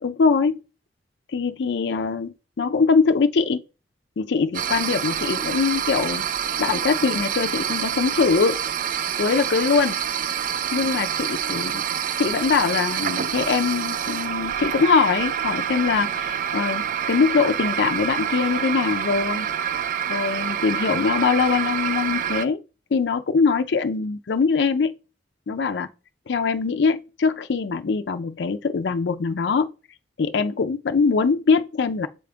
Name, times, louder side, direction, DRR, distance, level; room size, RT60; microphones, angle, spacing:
voice 1, 0.0-0.6 1.3-3.6 4.2-6.2 6.6-8.6 9.2-10.0 10.7-11.8 12.2-19.5 20.1-22.6 22.9-24.9 25.5-25.9 26.3-29.7 30.2-32.1, left 5 dB, 75° left, 0.5 m, -22 dB
sound 1, 4.5-22.5, right 9 dB, 50° right, 0.4 m, -27 dB
7.5 x 3.8 x 3.4 m
head